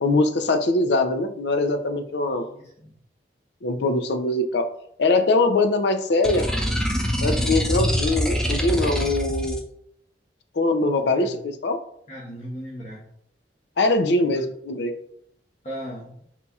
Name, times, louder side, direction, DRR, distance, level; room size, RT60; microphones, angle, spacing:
voice 1, 0.0-2.4 3.6-4.7 5.0-6.5 7.2-9.6 10.6-11.8 13.8-14.9, left 2 dB, 70° left, 8 dB, 0.5 m, -22 dB
voice 2, 2.3-2.9 7.2-7.6 11.0-11.4 12.1-13.1 14.2-14.5 15.6-16.2, equal, 40° left, -8 dB, 1.1 m, -38 dB
sound 1, 6.2-9.6, equal, 5° left, 0.4 m, -24 dB
4.3 x 4.1 x 2.3 m, 0.69 s
head